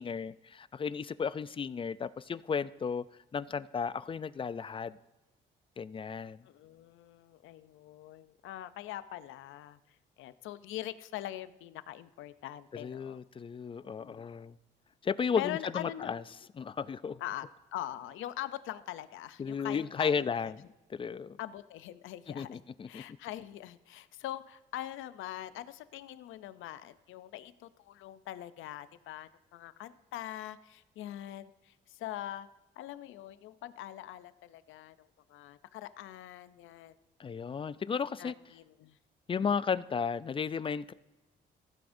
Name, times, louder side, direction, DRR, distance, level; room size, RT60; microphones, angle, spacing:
voice 1, 0.0-3.0 3.3-5.0 5.8-6.4 12.8-14.6 15.0-16.2 16.6-17.2 19.4-21.4 22.3-23.0 37.2-38.3 39.3-40.9, left 6 dB, 25° left, 17 dB, 0.3 m, -34 dB
voice 2, 6.4-13.2 13.8-14.3 15.4-16.1 17.2-20.5 21.4-22.6 22.9-32.5 32.8-37.0 38.2-39.0, left 13 dB, 85° left, 14 dB, 0.5 m, -43 dB
15.5 x 8.7 x 2.6 m, 1.1 s
cardioid pair, 90°, 20 cm